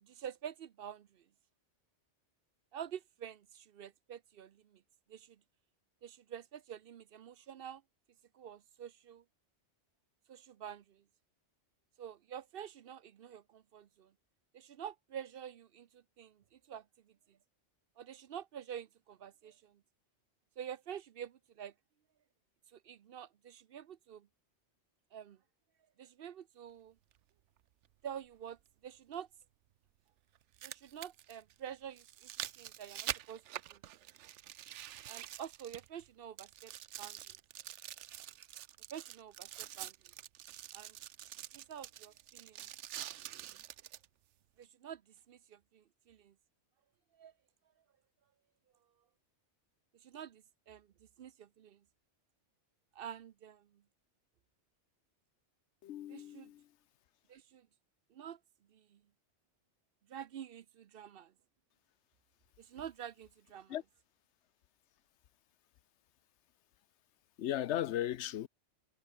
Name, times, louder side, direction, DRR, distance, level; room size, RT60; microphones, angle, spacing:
voice 1, 0.0-1.3 2.7-4.8 5.1-5.4 6.0-7.8 8.3-9.2 10.3-11.0 12.0-14.1 14.5-17.4 18.0-19.8 20.6-21.7 22.7-24.3 25.1-25.4 26.0-27.0 28.0-29.3 30.6-32.3 32.6-33.4 33.7-33.8 35.1-36.7 37.0-37.4 38.9-40.1 40.7-41.0 41.5-42.7 44.6-46.3 47.1-47.3 49.9-51.8 52.9-53.8 56.1-56.5 57.3-57.7 58.1-58.4 58.7-59.0 60.1-61.3 62.6-63.8, right 9 dB, 60° right, 0.8 m, -48 dB
sound 1, 27.1-27.2 29.1-29.2 30.3-36.1 36.4-44.1 44.6-44.7, right 12 dB, 85° right, 1.0 m, -46 dB
voice 2, 55.8-56.7 63.7-63.8 67.4-68.5, left 12 dB, 75° left, 0.9 m, -36 dB
omnidirectional pair, 1.2 m